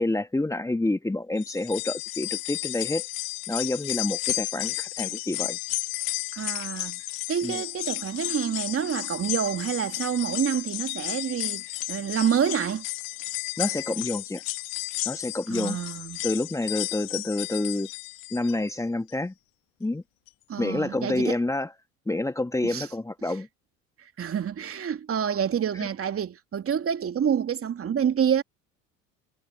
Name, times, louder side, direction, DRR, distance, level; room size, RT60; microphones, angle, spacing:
voice 1, 0.0-3.0 3.5-5.6 7.4-7.6 13.6-14.4 15.1-15.8 16.2-17.9 18.3-19.3 19.8-20.0 20.6-21.7 22.1-23.5 25.8-25.9, left 2 dB, 10° left, 1.7 m, -28 dB
sound 1, 1.4-18.7 19.1-19.2 20.3-20.4, left 25 dB, 65° left, 1.8 m, -33 dB
voice 2, 6.3-7.0 7.3-12.8 15.5-16.2 20.5-21.4 22.6-22.9 24.0-28.4, right 8 dB, 35° right, 2.7 m, -28 dB
hypercardioid pair, 70°, 38 cm